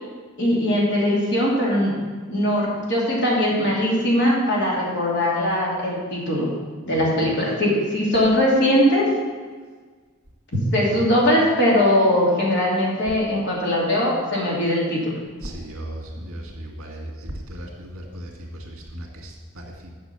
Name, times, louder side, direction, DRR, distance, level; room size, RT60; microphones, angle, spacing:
voice 1, 0.4-1.9 2.3-6.5 6.9-9.1 10.7-15.1, left 1 dB, 55° left, -4 dB, 2.8 m, -20 dB
voice 2, 15.4-19.9, right 1 dB, 65° right, 0 dB, 2.0 m, -36 dB
8.7 x 6.1 x 6.8 m, 1.5 s
head